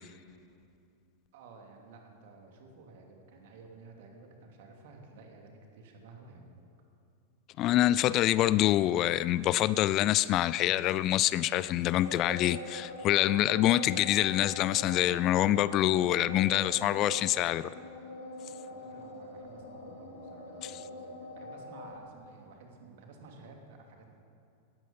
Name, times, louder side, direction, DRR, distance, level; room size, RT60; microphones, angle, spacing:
voice 1, 1.3-6.7 18.6-24.2, right 3 dB, 50° right, 2.8 m, -53 dB
voice 2, 7.6-17.7 20.6-20.7, left 14 dB, 35° left, 0.3 m, -26 dB
sound 1, 11.9-22.0, left 1 dB, 60° left, 3.3 m, -43 dB
18.0 x 13.5 x 5.5 m
figure-of-eight pair, 90°, 0 cm